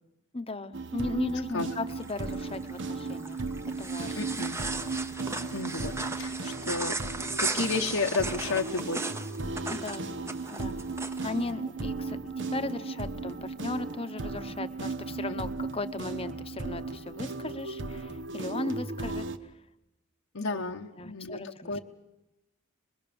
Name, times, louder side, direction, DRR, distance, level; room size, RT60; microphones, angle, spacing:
voice 1, 0.3-3.4 3.8-4.3 5.3-5.6 9.7-10.1 10.5-10.8 11.2-19.3 20.5-21.7, left 2 dB, 25° left, 10 dB, 1.0 m, -37 dB
sound 1, 0.7-19.4, right 3 dB, 55° right, 1.1 m, -36 dB
sound 2, 1.9-11.4, right 2 dB, 10° right, 0.9 m, -36 dB
voice 2, 4.2-4.6 5.5-5.9 6.2-7.0 7.2-9.1 15.3-15.4 20.3-21.4 21.7-21.8, left 3 dB, 75° left, 1 dB, 1.2 m, -32 dB
26.0 x 21.5 x 7.0 m, 0.96 s
head